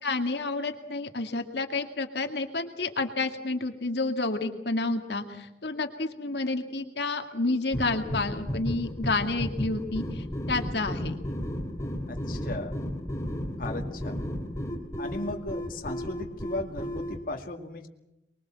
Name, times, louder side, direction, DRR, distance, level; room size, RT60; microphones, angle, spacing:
voice 1, 0.0-11.2, left 3 dB, 70° left, 5 dB, 2.2 m, -30 dB
sound 1, 7.7-17.2, equal, 15° left, 3.5 m, -34 dB
voice 2, 12.1-12.8 13.6-14.2 15.0-17.9, left 2 dB, 50° left, 2 dB, 2.2 m, -36 dB
24.5 x 22.5 x 7.6 m, 0.92 s
head